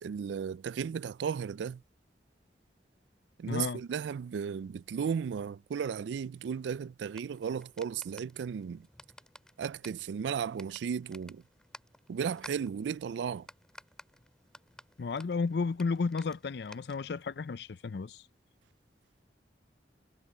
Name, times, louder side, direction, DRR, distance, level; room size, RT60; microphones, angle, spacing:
voice 1, 0.0-1.8 3.4-8.9 9.6-11.4 12.1-13.5, right 7 dB, 85° right, 0.3 m, -35 dB
voice 2, 3.5-3.8 15.0-18.2, left 4 dB, 70° left, 0.5 m, -33 dB
sound 1, 7.1-17.3, left 1 dB, 5° left, 2.9 m, -55 dB
head